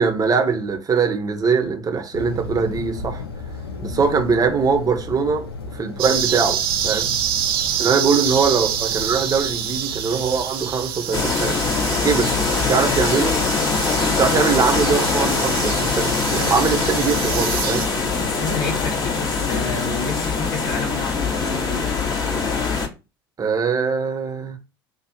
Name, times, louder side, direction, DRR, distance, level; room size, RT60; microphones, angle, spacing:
voice 1, 0.0-3.2 3.8-5.4 5.7-7.1 7.8-11.6 12.0-13.4 14.1-17.9 23.4-24.6, right 5 dB, 30° right, 1.3 m, -22 dB
sound 1, 2.1-10.2, left 3 dB, 90° left, 0.7 m, -35 dB
sound 2, 6.0-17.9, right 9 dB, 70° right, 1.3 m, -27 dB
sound 3, 11.1-22.9, left 4 dB, 35° left, 2.1 m, -22 dB
voice 2, 18.2-21.9, left 4 dB, 60° left, 2.6 m, -29 dB
6.2 x 2.9 x 3.0 m
hypercardioid pair, 70°, 12 cm